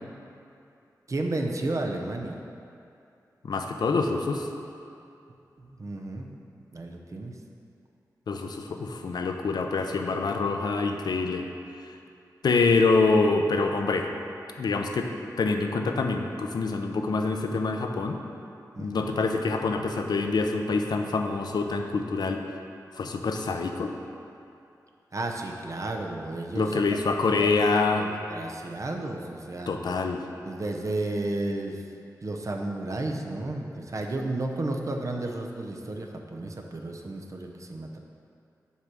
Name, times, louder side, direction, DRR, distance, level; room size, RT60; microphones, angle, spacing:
voice 1, 1.1-2.4 5.6-6.4 6.7-7.3 18.7-19.1 25.1-26.8 27.1-29.8 30.4-31.8 32.2-38.0, right 2 dB, 50° right, 2 dB, 0.7 m, -33 dB
voice 2, 3.4-4.5 8.3-11.4 12.4-14.1 14.6-15.1 15.4-18.2 18.8-22.4 23.0-23.9 26.6-28.1 29.7-30.2, left 3 dB, 80° left, 4 dB, 0.5 m, -25 dB
5.6 x 4.8 x 6.0 m, 2.6 s
cardioid pair, 60°, 7 cm